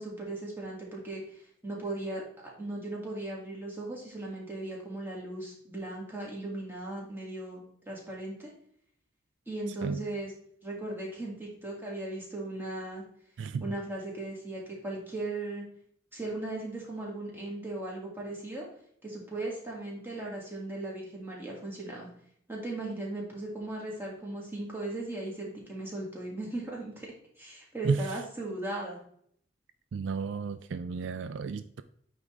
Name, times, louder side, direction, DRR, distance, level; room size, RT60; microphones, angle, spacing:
voice 1, 0.0-2.2 2.6-8.5 9.5-10.3 10.6-13.0 13.6-15.6 16.1-18.7 19.0-22.1 22.5-29.0, right 2 dB, 10° right, -3 dB, 1.9 m, -37 dB
voice 2, 29.9-31.8, right 5 dB, 70° right, 12 dB, 0.3 m, -32 dB
9.1 x 3.7 x 3.2 m, 0.65 s
head